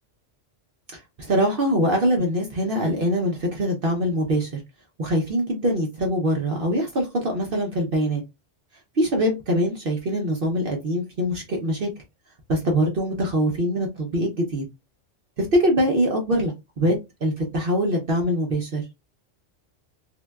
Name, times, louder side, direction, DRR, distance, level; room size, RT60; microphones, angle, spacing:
voice 1, 0.9-4.6 5.0-8.2 9.0-11.9 12.5-14.6 15.4-16.9 17.2-18.8, equal, 50° right, 0.8 m, -23 dB
3.7 x 2.2 x 2.2 m
omnidirectional pair, 1.3 m